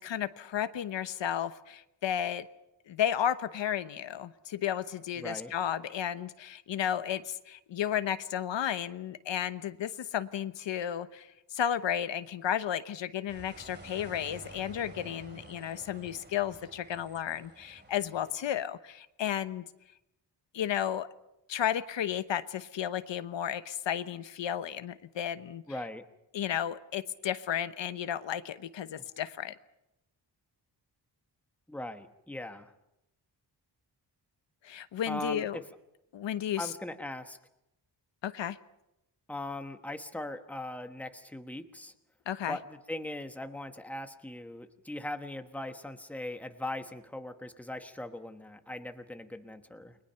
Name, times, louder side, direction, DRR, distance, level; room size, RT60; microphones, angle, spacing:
voice 1, 0.0-2.5 2.9-19.6 20.5-21.1 21.5-25.6 26.3-29.5 34.6-35.6 36.1-36.7 38.2-38.6 42.3-42.6, left 10 dB, 80° left, 12 dB, 1.0 m, -33 dB
voice 2, 5.2-5.5 25.7-26.0 29.0-29.1 31.7-32.7 35.1-35.6 36.6-37.4 39.3-41.9 42.5-50.0, left 1 dB, 5° left, 7 dB, 1.2 m, -40 dB
sound 1, 13.3-18.4, right 2 dB, 25° right, 2.9 m, -51 dB
29.5 x 22.0 x 5.7 m, 0.86 s
wide cardioid pair, 165°, 44 cm